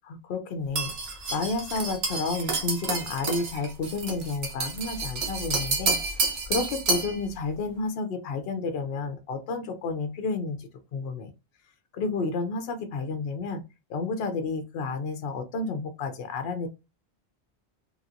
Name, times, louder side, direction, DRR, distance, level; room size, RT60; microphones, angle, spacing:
voice 1, 0.0-0.9 1.3-11.3 11.9-13.6 13.9-16.7, left 3 dB, 70° left, 7 dB, 0.8 m, -31 dB
sound 1, 0.8-7.2, right 4 dB, 75° right, 1.1 m, -29 dB
3.2 x 2.9 x 2.5 m, 0.26 s
omnidirectional pair, 1.1 m